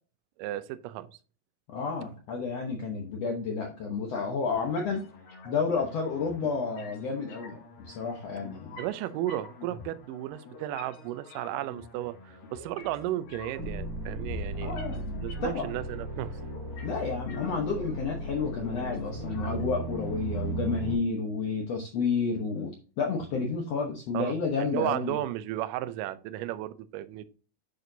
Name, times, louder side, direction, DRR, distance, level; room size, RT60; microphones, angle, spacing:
voice 1, 0.4-1.1 8.8-14.8 15.2-16.3 24.1-27.2, right 14 dB, 90° right, 13 dB, 1.9 m, -34 dB
voice 2, 1.7-5.0 5.4-8.8 14.6-15.7 16.8-25.2, left 5 dB, 85° left, 1 dB, 1.4 m, -31 dB
sound 1, 4.5-20.5, left 3 dB, 60° left, 3.6 m, -47 dB
sound 2, 13.6-20.9, right 2 dB, 55° right, 4.3 m, -36 dB
9.4 x 6.1 x 2.7 m, 0.37 s
omnidirectional pair, 4.6 m